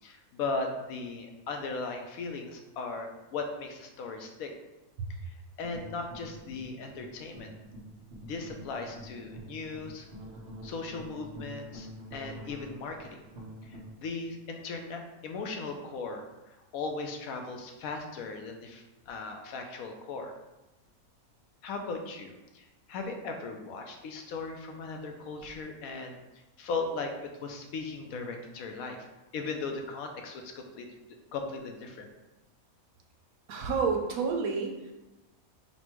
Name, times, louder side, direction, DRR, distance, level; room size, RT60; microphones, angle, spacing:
voice 1, 0.0-4.5 5.2-7.5 8.2-10.1 10.6-13.2 13.6-20.3 21.6-26.2 26.6-29.1 29.3-32.1, left 3 dB, 80° left, 4 dB, 1.0 m, -38 dB
sound 1, 5.6-14.0, right 1 dB, 55° right, 1.2 m, -46 dB
voice 2, 33.5-34.9, right 5 dB, 85° right, 2 dB, 1.1 m, -29 dB
4.2 x 2.2 x 4.4 m, 1.0 s
omnidirectional pair, 1.5 m